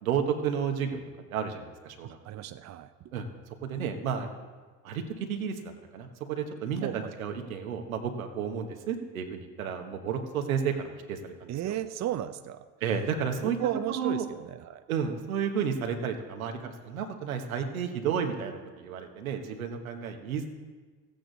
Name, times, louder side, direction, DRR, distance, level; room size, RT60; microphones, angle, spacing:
voice 1, 0.0-1.0 1.3-2.4 3.1-3.3 3.6-4.3 4.8-11.8 12.8-13.6 14.0-14.3 14.9-20.5, right 7 dB, 90° right, 5 dB, 1.3 m, -32 dB
voice 2, 2.0-3.1 6.8-7.1 11.5-12.7 13.4-14.8, right 12 dB, 45° right, 11 dB, 0.6 m, -34 dB
15.0 x 8.7 x 4.0 m, 1.4 s
hypercardioid pair, 70°, 40 cm